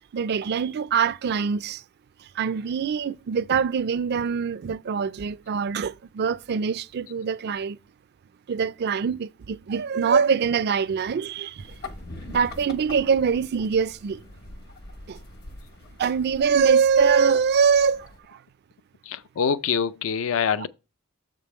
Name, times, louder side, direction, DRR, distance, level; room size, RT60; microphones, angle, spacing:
voice 1, 0.1-1.8 2.4-7.8 8.5-11.6 12.3-14.2 15.1-15.2 16.0-18.1, right 6 dB, 50° right, 0.4 m, -23 dB
sound 1, 11.6-18.2, left 2 dB, 50° left, 0.9 m, -43 dB
voice 2, 19.0-20.7, left 7 dB, 65° left, 0.4 m, -25 dB
7.3 x 5.3 x 4.2 m
head